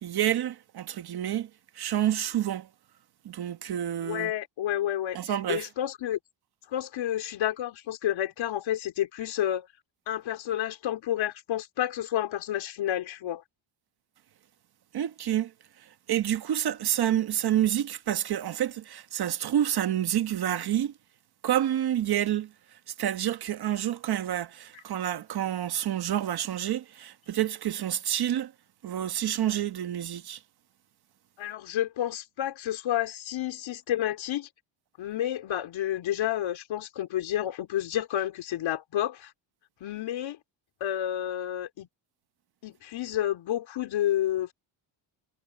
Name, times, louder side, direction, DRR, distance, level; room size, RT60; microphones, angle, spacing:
voice 1, 0.0-1.5 1.8-2.7 3.2-4.3 5.1-5.7 14.9-15.5 16.1-20.9 21.4-22.5 23.0-28.5 28.8-30.4, right 11 dB, 50° right, 1.3 m, -28 dB
voice 2, 4.0-5.2 5.5-6.2 6.7-9.7 10.1-13.4 31.4-34.5 35.0-39.3 39.8-40.4 40.8-41.9 42.6-44.5, left 12 dB, 70° left, 4.1 m, -30 dB
cardioid pair, 155°, 49 cm